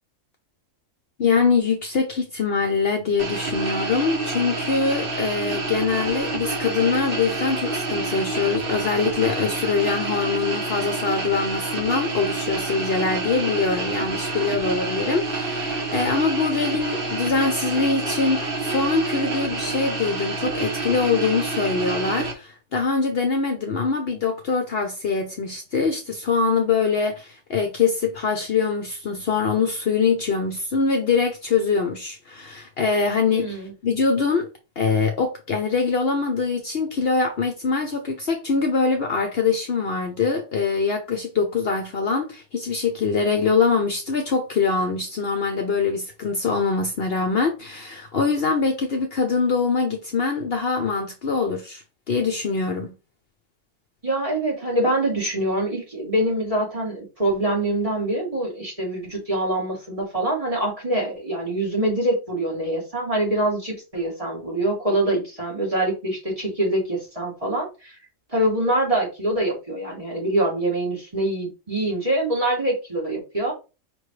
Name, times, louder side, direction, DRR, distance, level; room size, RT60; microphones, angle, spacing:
voice 1, 1.2-33.6 33.8-34.5 34.8-52.9, left 4 dB, 55° left, 0.9 m, -23 dB
sound 1, 3.2-22.3, right 3 dB, 45° right, 1.2 m, -28 dB
voice 2, 33.3-33.7 54.0-67.9 68.3-73.5, right 1 dB, 25° right, 2.4 m, -24 dB
5.2 x 3.1 x 3.2 m
omnidirectional pair, 1.3 m